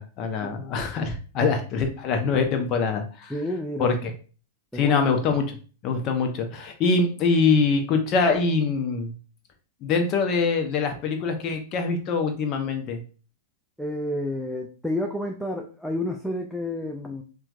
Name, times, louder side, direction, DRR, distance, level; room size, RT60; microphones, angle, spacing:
voice 1, 0.0-3.4 3.8-4.1 4.7-5.6 5.8-9.1 9.8-13.0, left 4 dB, 35° left, 5 dB, 0.7 m, -24 dB
voice 2, 3.3-3.9 4.7-5.0 13.8-17.2, left 1 dB, ahead, 0 dB, 0.4 m, -30 dB
4.4 x 2.3 x 2.5 m, 0.37 s
figure-of-eight pair, 100°, 0 cm